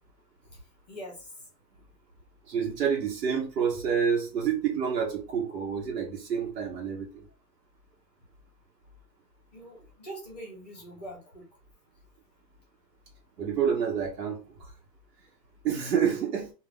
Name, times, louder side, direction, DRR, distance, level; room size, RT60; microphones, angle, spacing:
voice 1, 0.9-1.3 9.5-11.5, right 1 dB, 25° left, 0.7 m, -43 dB
voice 2, 2.5-7.3 13.4-14.7 15.6-16.5, right 7 dB, 70° right, 0.9 m, -28 dB
2.4 x 2.2 x 3.3 m
hypercardioid pair, 160°, 50 cm